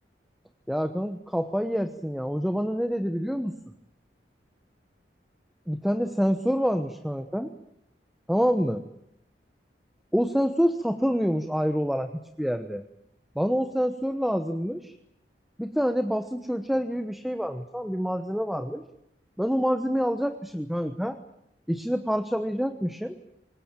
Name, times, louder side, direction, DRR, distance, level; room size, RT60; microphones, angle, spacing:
voice 1, 0.7-3.6 5.7-7.5 8.3-8.8 10.1-12.1 12.4-12.8 13.3-14.9 15.6-18.8 19.4-21.2 21.7-23.2, equal, ahead, 8 dB, 1.1 m, -27 dB
26.0 x 22.0 x 9.0 m, 0.79 s
head